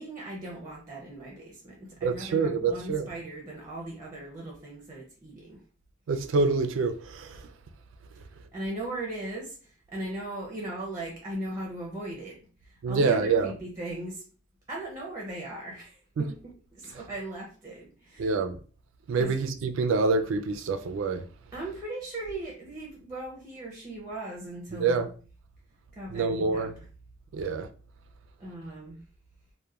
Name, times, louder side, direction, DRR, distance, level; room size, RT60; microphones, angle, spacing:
voice 1, 0.0-5.6 8.5-14.2 14.7-16.4 16.7-18.4 19.1-19.4 21.5-25.0 25.9-26.7 28.4-29.0, right 1 dB, 15° right, 0.5 m, -38 dB
voice 2, 2.0-3.1 6.1-7.5 12.8-13.5 16.2-16.3 18.2-18.6 19.1-21.3 24.7-25.1 26.1-26.7 27.3-27.7, right 4 dB, 80° right, 0.3 m, -26 dB
2.9 x 2.1 x 2.3 m
head